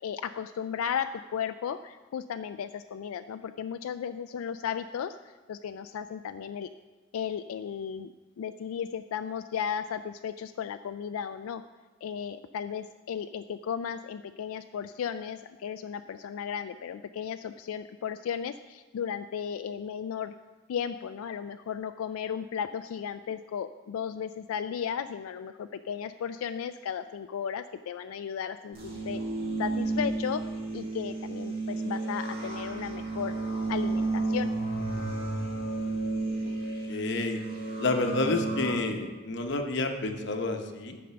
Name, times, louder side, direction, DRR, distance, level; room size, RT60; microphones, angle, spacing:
voice 1, 0.0-5.2 5.5-6.7 7.1-11.6 12.0-20.3 20.7-29.2 29.6-30.4 30.7-33.3 33.7-34.5, left 7 dB, 85° left, 9 dB, 0.3 m, -35 dB
sound 1, 28.7-38.7, right 2 dB, 45° right, 2.0 m, -32 dB
voice 2, 36.9-37.4 37.8-41.0, left 2 dB, 55° left, 5 dB, 0.9 m, -29 dB
10.0 x 5.3 x 6.7 m, 1.3 s
head